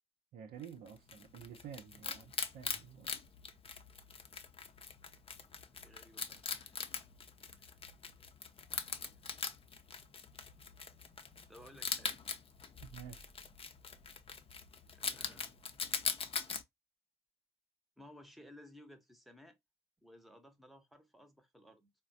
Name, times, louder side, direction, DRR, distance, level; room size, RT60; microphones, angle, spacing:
voice 1, 0.3-3.1 12.8-13.3, right 8 dB, 65° right, 0.7 m, -50 dB
Wild animals, 0.6-16.6, left 5 dB, 35° left, 0.6 m, -42 dB
voice 2, 5.4-6.8 7.6-7.8 9.1-9.2 11.5-12.2 14.9-15.5 18.0-19.6 20.0-21.9, equal, ahead, 0.8 m, -58 dB
3.9 x 2.2 x 2.5 m
hypercardioid pair, 45°, 17 cm